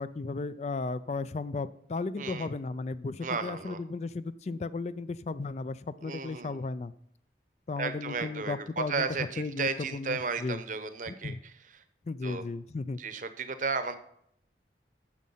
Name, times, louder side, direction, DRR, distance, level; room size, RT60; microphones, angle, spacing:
voice 1, 0.0-6.9 7.7-9.1 9.4-10.6 11.1-11.4 12.1-13.0, left 3 dB, 40° left, 15 dB, 0.3 m, -35 dB
voice 2, 2.2-2.5 3.2-3.8 6.0-6.6 7.8-11.8 12.2-12.4 13.0-14.0, right 4 dB, 45° right, 11 dB, 0.8 m, -34 dB
9.3 x 7.4 x 5.6 m, 0.70 s
head